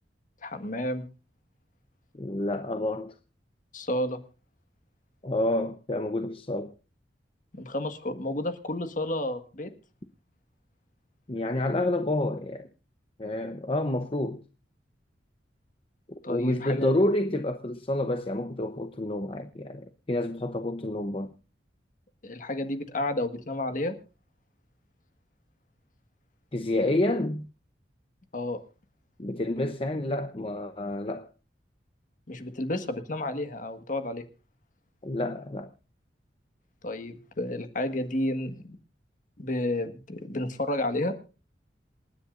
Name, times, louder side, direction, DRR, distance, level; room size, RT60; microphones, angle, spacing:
voice 1, 0.4-1.1 3.7-4.2 7.5-9.7 16.2-16.9 22.2-24.0 28.3-28.6 32.3-34.2 36.8-38.8 39.4-41.1, left 1 dB, 45° left, 1.6 m, -31 dB
voice 2, 2.2-3.1 5.2-6.7 11.3-12.7 13.2-14.4 16.1-21.4 26.5-27.5 29.2-31.3 35.0-35.7, left 1 dB, 30° left, 0.8 m, -29 dB
27.5 x 10.0 x 2.5 m
head